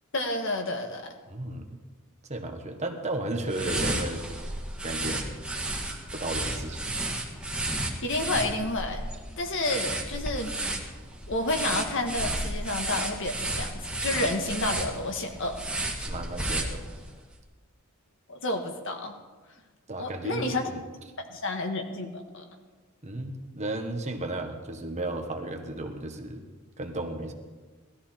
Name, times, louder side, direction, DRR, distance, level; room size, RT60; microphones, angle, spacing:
voice 1, 0.1-1.1 8.0-9.0 9.4-10.5 11.3-15.6 18.3-19.1 20.0-20.6 21.3-22.4, left 2 dB, 55° left, 4 dB, 1.6 m, -30 dB
voice 2, 1.3-1.8 2.3-4.3 4.8-5.4 6.1-6.8 16.1-16.8 19.9-20.8 23.0-26.4 26.8-27.3, right 2 dB, 30° right, 4 dB, 1.3 m, -34 dB
sound 1, 3.5-17.2, right 1 dB, 5° right, 1.6 m, -33 dB
18.5 x 13.5 x 4.4 m, 1.3 s
head